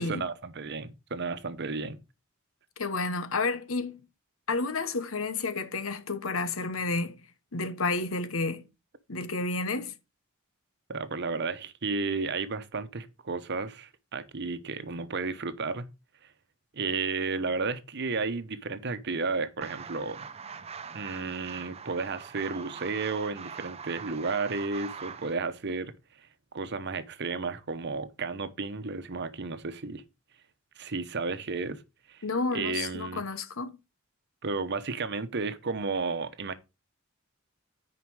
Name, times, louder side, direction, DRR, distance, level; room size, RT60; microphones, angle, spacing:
voice 1, 0.0-2.0 10.9-15.9 16.7-20.3 20.9-25.9 26.5-30.0 30.8-31.8 32.1-32.2 32.5-33.2 34.4-36.5, right 4 dB, 55° right, 0.9 m, -33 dB
voice 2, 2.8-4.0 4.5-7.2 7.5-8.6 9.1-9.9 32.2-33.7, left 3 dB, 90° left, 1.1 m, -31 dB
sound 1, 19.6-25.4, right 6 dB, 30° right, 0.6 m, -42 dB
9.5 x 5.1 x 4.7 m
head